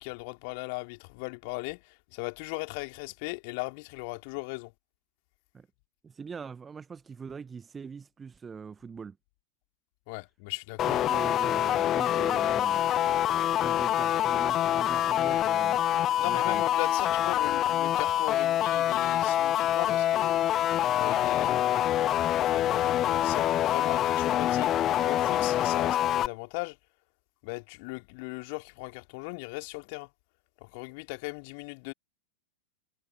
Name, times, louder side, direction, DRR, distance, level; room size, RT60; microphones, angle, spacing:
voice 1, 0.0-1.8 2.1-4.7 10.1-11.2 16.2-20.4 20.9-21.7 22.1-24.7 25.0-26.8 27.4-30.1 30.6-31.9, left 31 dB, 45° left, 3.0 m, -38 dB
voice 2, 6.0-9.2 10.8-12.8 13.6-15.8 16.2-16.6, right 6 dB, 15° right, 1.3 m, -42 dB
sound 1, 10.8-26.3, left 12 dB, 30° left, 0.5 m, -26 dB
figure-of-eight pair, 90°, 0 cm